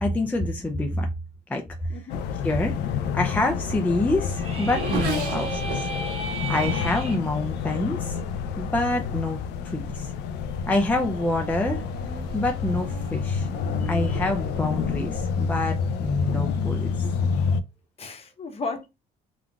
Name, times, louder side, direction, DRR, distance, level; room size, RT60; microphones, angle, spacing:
voice 1, 0.0-1.1 1.5-1.6 2.4-2.8 3.1-5.9 6.5-8.2 8.6-10.1 10.7-11.8 12.3-13.5 13.8-16.9, left 2 dB, 10° left, 0.4 m, -26 dB
voice 2, 1.9-2.3 18.0-18.9, left 4 dB, 35° left, 0.8 m, -34 dB
sound 1, 2.1-17.6, left 6 dB, 85° left, 0.4 m, -28 dB
Race car auto racing / Accelerating revving vroom, 3.0-8.9 9.7-10.1 10.5-16.4, right 3 dB, 65° right, 1.2 m, -39 dB
sound 2, 4.3-7.2, right 3 dB, 35° right, 0.9 m, -34 dB
3.8 x 2.3 x 2.3 m
cardioid pair, 110°, 17 cm